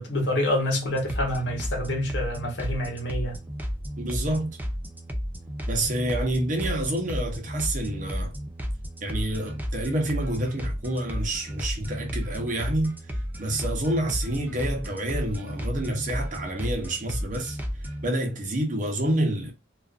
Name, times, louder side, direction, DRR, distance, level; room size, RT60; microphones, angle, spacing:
voice 1, 0.0-3.4, left 1 dB, 70° left, 1.0 m, -27 dB
sound 1, 0.9-18.1, equal, 10° right, 0.4 m, -33 dB
voice 2, 4.0-4.6 5.7-8.3 9.0-12.9 13.4-17.6 18.0-19.5, right 1 dB, 45° right, 0.7 m, -28 dB
2.4 x 2.4 x 2.4 m
head